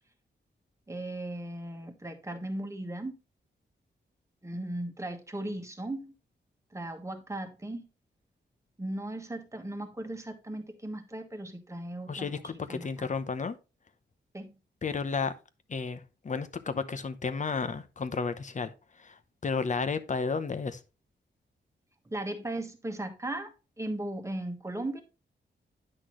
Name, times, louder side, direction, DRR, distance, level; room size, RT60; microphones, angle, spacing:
voice 1, 0.9-3.2 4.4-6.1 6.7-7.9 8.8-13.1 14.3-14.6 22.0-25.0, right 1 dB, 15° right, 1.4 m, -37 dB
voice 2, 12.1-13.6 14.8-15.4 15.7-20.8, left 4 dB, 40° left, 0.8 m, -32 dB
9.9 x 6.0 x 3.1 m
wide cardioid pair, 135°, 19 cm